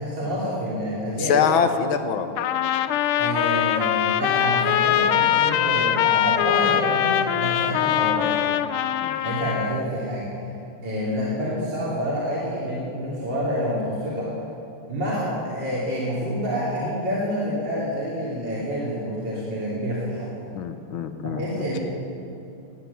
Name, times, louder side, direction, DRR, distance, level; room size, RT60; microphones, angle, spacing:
voice 1, 0.0-1.6 3.2-8.4 9.2-10.5 10.8-14.3 14.9-20.3 21.2-21.8, equal, 55° right, -8 dB, 3.8 m, -28 dB
voice 2, 1.2-2.3 9.0-9.2 20.5-21.4, left 7 dB, 70° left, 8 dB, 1.7 m, -23 dB
Trumpet, 2.4-9.8, left 11 dB, 85° left, 1.5 m, -22 dB
19.0 x 10.0 x 7.0 m, 2.7 s
omnidirectional pair, 2.4 m